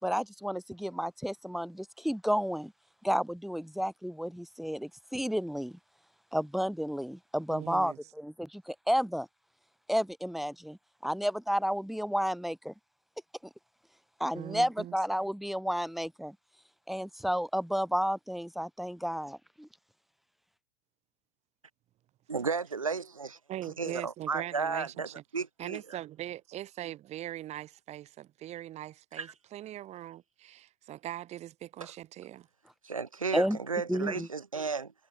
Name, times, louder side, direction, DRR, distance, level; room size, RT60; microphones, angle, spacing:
voice 1, 0.0-2.7 3.0-5.8 6.3-9.3 9.9-12.7 14.2-16.3 16.9-19.7 33.3-33.6 33.9-34.3, equal, ahead, 3.3 m, -31 dB
voice 2, 7.5-8.0 14.3-15.0 23.5-25.2 25.6-32.5, right 13 dB, 40° right, 2.5 m, -41 dB
voice 3, 22.3-23.4 23.8-25.8 29.1-29.3 32.8-34.9, right 5 dB, 90° right, 2.7 m, -33 dB
figure-of-eight pair, 80°, 17 cm